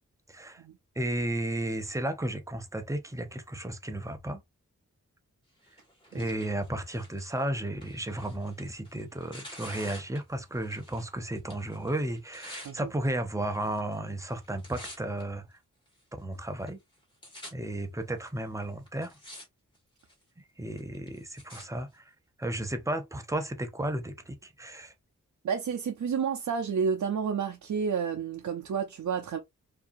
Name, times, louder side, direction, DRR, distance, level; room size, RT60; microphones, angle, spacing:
voice 1, 0.3-0.6 1.0-4.4 6.1-15.5 16.2-16.8 17.5-19.2 20.6-22.1 22.4-24.9, right 1 dB, 10° right, 0.6 m, -33 dB
Tearing, 5.6-11.1 11.4-12.7 13.5-14.0 14.3-15.2 15.9-16.0 16.7-16.8 16.9-17.5 18.3-18.4 18.9-19.4 19.7-20.2 20.8-21.6 22.4-22.5, left 1 dB, 15° left, 1.9 m, -48 dB
voice 2, 25.4-29.4, right 6 dB, 80° right, 0.6 m, -30 dB
4.7 x 2.7 x 2.6 m
wide cardioid pair, 165°, 30 cm